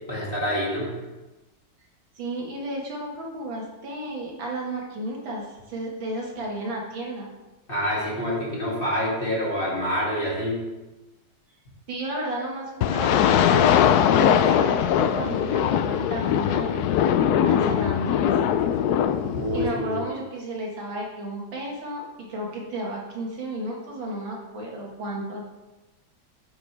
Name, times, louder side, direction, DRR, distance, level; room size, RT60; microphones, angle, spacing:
voice 1, 0.1-0.9 7.7-10.6 19.3-20.0, equal, 30° left, -6 dB, 2.7 m, -27 dB
voice 2, 2.2-7.3 11.9-13.7 14.1-16.9 17.4-18.4 19.5-25.5, right 1 dB, 85° right, -2 dB, 2.6 m, -33 dB
sound 1, 12.8-19.7, left 9 dB, 70° left, 0.9 m, -21 dB
9.1 x 9.0 x 3.4 m, 1.1 s
omnidirectional pair, 2.0 m